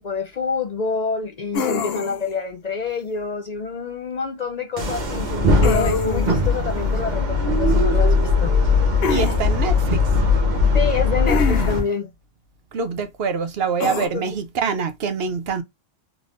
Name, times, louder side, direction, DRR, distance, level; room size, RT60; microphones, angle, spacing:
voice 1, 0.0-8.6 10.7-12.1 14.1-14.3, left 5 dB, 55° left, 0.5 m, -27 dB
sound 1, 1.5-2.3 5.6-6.4 9.0-9.4 11.3-11.9 13.8-14.1, left 5 dB, 70° left, 0.9 m, -25 dB
sound 2, 4.8-11.8, left 3 dB, 45° right, 1.1 m, -19 dB
voice 2, 9.1-10.0 12.7-15.6, right 5 dB, 70° right, 1.0 m, -25 dB
3.7 x 3.3 x 2.5 m
omnidirectional pair, 1.1 m